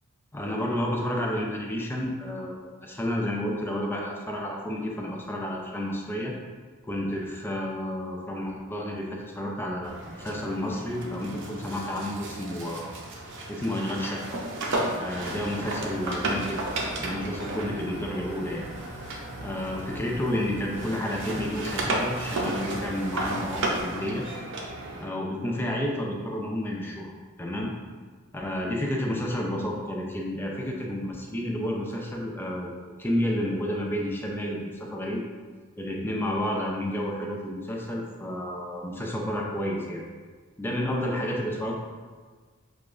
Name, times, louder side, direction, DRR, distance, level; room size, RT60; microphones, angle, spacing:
voice 1, 0.3-6.3 6.9-12.9 13.5-14.4 15.0-16.6 17.0-18.7 19.4-24.2 25.0-27.1 27.4-27.7 28.3-32.7 33.0-35.2 35.8-40.0 40.6-41.8, left 1 dB, 10° left, -1 dB, 0.5 m, -30 dB
sound 1, 9.8-20.4 20.7-25.1, right 2 dB, 55° right, 0.6 m, -34 dB
sound 2, 15.2-23.8, right 1 dB, 30° right, 0.8 m, -43 dB
6.6 x 2.4 x 2.5 m, 1.5 s
head